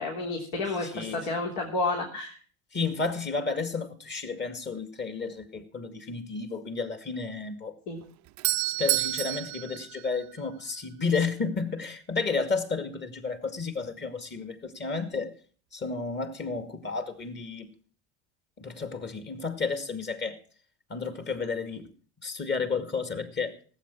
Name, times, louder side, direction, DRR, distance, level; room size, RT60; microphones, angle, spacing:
voice 1, 0.0-2.4 7.9-8.0, left 3 dB, 60° left, -1 dB, 3.5 m, -30 dB
voice 2, 0.8-1.2 2.7-7.7 8.8-15.3 15.7-17.7 18.6-20.4 20.9-21.9 22.2-23.5, left 4 dB, 30° left, 9 dB, 2.4 m, -32 dB
Doorbell, 8.0-10.9, right 23 dB, 50° right, 0.6 m, -30 dB
17.5 x 8.3 x 6.0 m, 0.44 s
hypercardioid pair, 85°, 37 cm